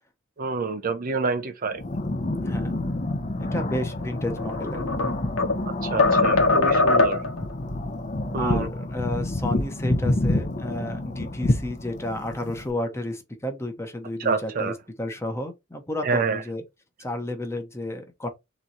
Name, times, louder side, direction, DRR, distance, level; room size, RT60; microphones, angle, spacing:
voice 1, 0.4-1.8 5.9-7.2 8.3-8.7 14.2-14.7 16.0-16.4, right 4 dB, 45° right, 0.6 m, -27 dB
sound 1, 1.7-12.7, left 1 dB, 40° left, 0.7 m, -28 dB
voice 2, 2.4-2.7 3.5-4.8 8.3-16.6 17.0-18.3, left 1 dB, 15° left, 0.9 m, -32 dB
sound 2, 4.3-5.6 6.0-7.4, left 3 dB, 90° left, 1.1 m, -21 dB
3.7 x 3.1 x 4.0 m
head